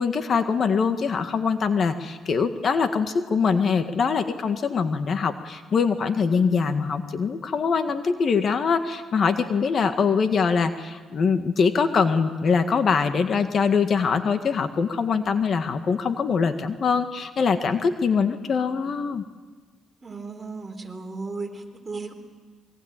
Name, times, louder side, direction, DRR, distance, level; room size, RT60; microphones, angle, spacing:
voice 1, 0.0-19.2, left 5 dB, 50° left, 8 dB, 1.8 m, -23 dB
voice 2, 20.0-22.1, right 3 dB, 25° right, 4 dB, 4.0 m, -35 dB
26.0 x 22.5 x 9.1 m, 1.4 s
cardioid pair, 90°, 0 cm